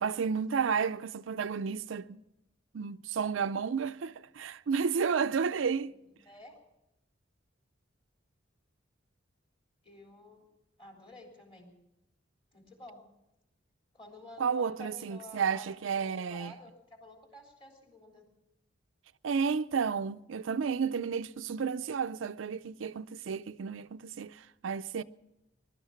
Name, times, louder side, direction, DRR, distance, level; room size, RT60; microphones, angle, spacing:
voice 1, 0.0-2.2 2.7-5.9 14.4-16.5 19.2-25.0, right 6 dB, 80° right, 0.5 m, -32 dB
voice 2, 5.9-6.6 9.8-10.4 10.8-11.7 12.5-13.0 13.9-15.7 15.9-18.3, left 1 dB, 30° left, 3.5 m, -51 dB
20.5 x 12.0 x 5.8 m
head